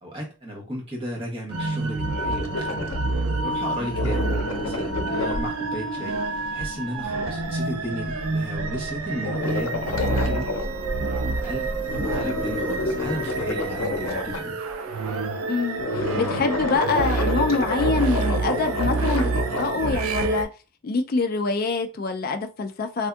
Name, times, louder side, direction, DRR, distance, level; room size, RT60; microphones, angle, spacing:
voice 1, 0.0-2.9 3.4-4.2 4.6-10.5 11.0-11.7 12.0-14.6, equal, 25° right, 0.9 m, -34 dB
sound 1, 1.5-20.4, right 3 dB, 85° right, 0.4 m, -28 dB
sound 2, 2.2-3.2 3.5-3.6 3.8-11.0 11.3-11.5 11.7-14.9 15.7-19.9, left 3 dB, 85° left, 0.6 m, -30 dB
sound 3, 7.0-14.4, equal, 45° right, 0.6 m, -39 dB
voice 2, 15.5-19.3 19.6-20.5 20.8-23.1, left 4 dB, 45° left, 0.3 m, -25 dB
3.5 x 2.6 x 2.3 m
head